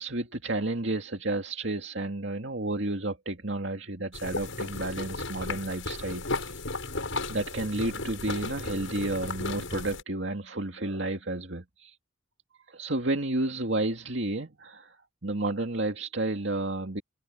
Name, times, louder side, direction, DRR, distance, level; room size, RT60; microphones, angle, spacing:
voice 1, 0.0-6.6 7.3-12.0 12.7-15.0 15.2-17.0, right 2 dB, 65° right, 2.2 m, -31 dB
sound 1, 4.1-10.0, left 3 dB, 85° left, 7.8 m, -35 dB
head